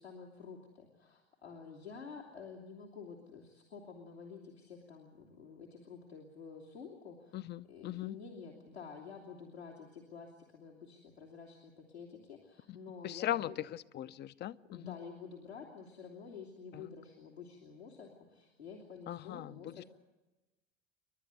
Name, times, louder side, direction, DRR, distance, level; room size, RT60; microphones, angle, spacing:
voice 1, 0.0-13.5 14.7-19.8, left 5 dB, 90° left, -4 dB, 2.8 m, -50 dB
voice 2, 7.3-8.2 12.7-12.8 13.0-15.0 16.7-16.8 19.1-19.8, left 13 dB, 35° left, 16 dB, 0.7 m, -39 dB
29.5 x 12.0 x 9.6 m, 1.1 s
figure-of-eight pair, 75°, 31 cm